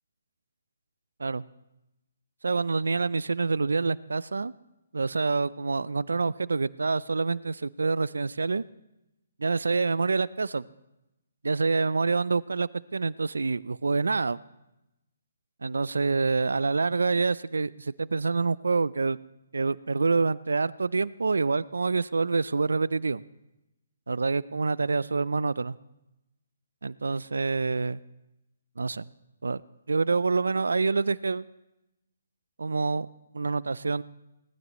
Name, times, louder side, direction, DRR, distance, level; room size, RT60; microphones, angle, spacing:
voice 1, 2.4-4.5 4.9-8.6 9.4-10.7 11.4-14.4 15.6-19.2 19.5-23.2 24.1-25.7 26.8-28.0 28.8-29.0 29.4-29.6 29.9-31.5 32.6-33.1 33.3-34.0, right 4 dB, 85° right, 20 dB, 0.4 m, -26 dB
19.0 x 14.0 x 3.1 m, 0.92 s
hypercardioid pair, 145°, 0 cm